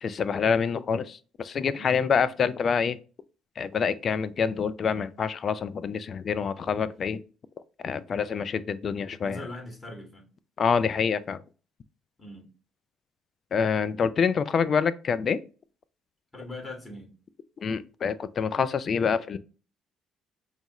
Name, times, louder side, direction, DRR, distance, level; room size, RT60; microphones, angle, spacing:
voice 1, 0.0-3.0 3.6-7.2 7.8-9.4 10.6-11.4 13.5-15.4 17.6-19.4, left 6 dB, 50° left, 0.4 m, -26 dB
voice 2, 1.8-2.1 9.2-10.3 12.2-12.5 16.3-17.1, left 1 dB, 25° left, 2.2 m, -41 dB
5.2 x 2.4 x 2.9 m
supercardioid pair, 65°, 0 cm